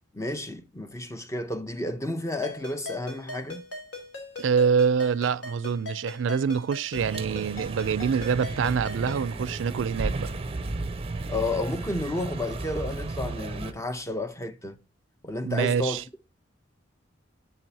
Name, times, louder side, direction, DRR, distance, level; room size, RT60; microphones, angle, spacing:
voice 1, 0.1-3.6 11.3-14.8 15.2-16.0, left 2 dB, 15° left, 0.7 m, -31 dB
Ringtone, 2.4-9.3, left 3 dB, 70° left, 2.8 m, -41 dB
voice 2, 4.4-10.3 15.4-16.0, right 6 dB, 80° right, 0.4 m, -25 dB
sound 1, 7.0-13.7, right 2 dB, 30° right, 0.6 m, -34 dB
7.6 x 7.5 x 2.7 m
head